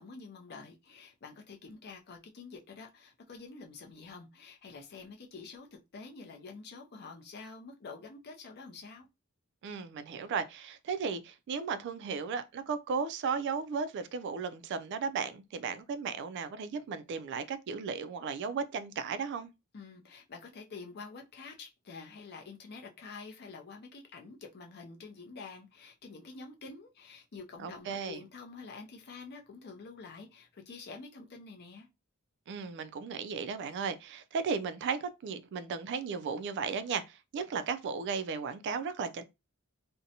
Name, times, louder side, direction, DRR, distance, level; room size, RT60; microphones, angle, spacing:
voice 1, 0.0-5.7 5.9-9.1 19.7-31.9, left 4 dB, 50° left, 0.5 m, -48 dB
voice 2, 9.6-19.5 27.6-28.2 32.5-39.2, right 5 dB, 55° right, 0.3 m, -35 dB
2.6 x 2.1 x 2.7 m
head